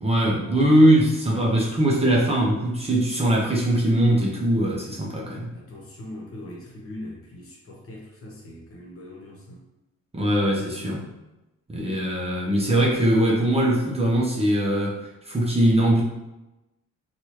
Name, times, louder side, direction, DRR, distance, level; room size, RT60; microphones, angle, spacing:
voice 1, 0.0-5.5 10.1-11.1 11.7-16.0, right 1 dB, 20° right, -4 dB, 0.6 m, -21 dB
voice 2, 5.5-9.6, left 1 dB, 45° left, -2 dB, 1.0 m, -41 dB
2.9 x 2.4 x 3.1 m, 0.99 s
cardioid pair, 90°, 30 cm